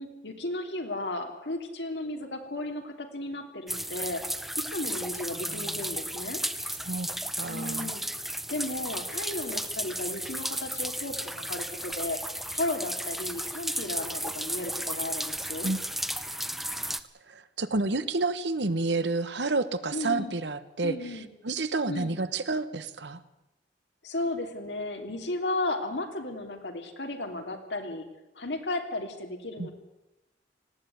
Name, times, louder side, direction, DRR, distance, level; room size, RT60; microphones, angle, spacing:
voice 1, 0.0-4.2 4.6-6.4 7.5-8.0 8.5-12.2 12.5-15.7 19.9-20.3 20.8-21.3 21.9-22.2 24.0-28.1 28.3-29.7, left 2 dB, 85° left, 4 dB, 3.1 m, -34 dB
sound 1, 3.7-17.0, right 1 dB, ahead, 0.8 m, -34 dB
voice 2, 5.3-5.9 6.9-7.1 7.4-7.9 15.6-15.8 17.3-23.2 29.6-29.7, right 3 dB, 90° right, 12 dB, 1.3 m, -30 dB
19.0 x 15.5 x 9.4 m, 1.0 s
head